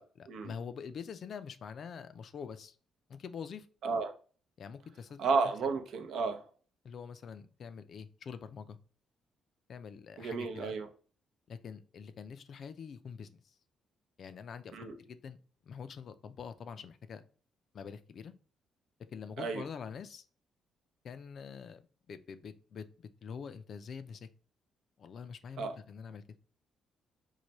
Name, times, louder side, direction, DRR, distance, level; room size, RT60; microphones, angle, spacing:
voice 1, 0.0-2.8 3.1-3.7 4.6-5.2 6.8-8.8 9.7-10.7 11.5-13.5 14.2-14.7 15.0-15.4 15.6-17.2 17.7-18.3 19.1-20.2 21.0-22.9 23.2-24.3 25.0-26.2, left 6 dB, 55° left, 0.3 m, -45 dB
voice 2, 3.8-4.1 5.2-6.4 10.2-10.9 14.7-15.0 19.4-19.6 25.6-25.8, right 4 dB, 75° right, 0.6 m, -32 dB
3.2 x 2.2 x 3.9 m
cardioid pair, 90°, 0 cm